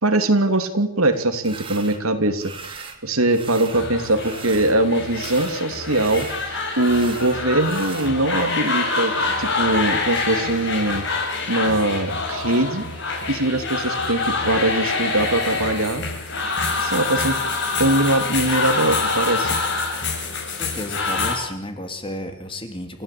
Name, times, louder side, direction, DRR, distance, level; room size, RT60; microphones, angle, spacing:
voice 1, 0.0-11.1 11.5-12.8 13.3-16.0 16.8-17.4 17.8-19.6, right 2 dB, 85° right, 7 dB, 3.0 m, -22 dB
sound 1, 1.4-2.0 2.4-3.0 3.3-4.8 5.1-8.1, right 5 dB, 25° right, 2.5 m, -38 dB
sound 2, 3.7-21.4, left 3 dB, 55° left, 7.9 m, -26 dB
voice 2, 20.6-23.0, left 1 dB, 25° left, 6 dB, 3.1 m, -32 dB
29.5 x 15.0 x 8.7 m, 0.68 s
head